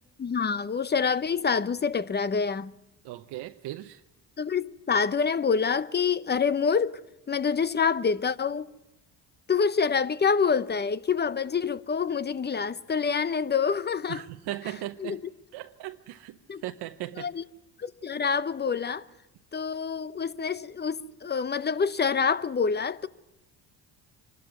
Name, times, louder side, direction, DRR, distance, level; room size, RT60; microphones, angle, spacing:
voice 1, 0.2-2.7 4.4-7.0 7.3-8.7 9.5-14.3 15.0-15.2 16.5-16.6 17.2-17.4 17.8-19.1 19.5-23.1, left 6 dB, 25° left, 0.8 m, -26 dB
voice 2, 3.0-4.0 14.1-15.2 15.5-17.3, right 15 dB, 75° right, 0.9 m, -38 dB
25.5 x 13.0 x 9.3 m
supercardioid pair, 85°, 41 cm